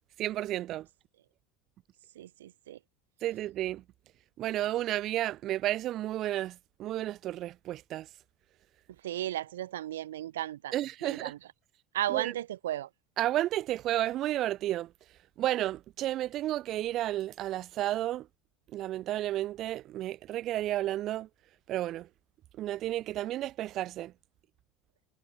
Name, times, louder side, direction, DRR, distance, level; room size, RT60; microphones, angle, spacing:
voice 1, 0.2-0.9 3.2-3.8 4.4-8.1 10.7-11.3 12.1-12.3 13.2-14.9 15.4-18.3 18.7-21.3 21.7-22.1 22.6-24.1, right 14 dB, 50° right, 3.5 m, -32 dB
voice 2, 2.2-2.8 9.0-10.7 11.0-11.4 11.9-12.9, right 13 dB, 75° right, 2.6 m, -34 dB
hypercardioid pair, 75°, 0 cm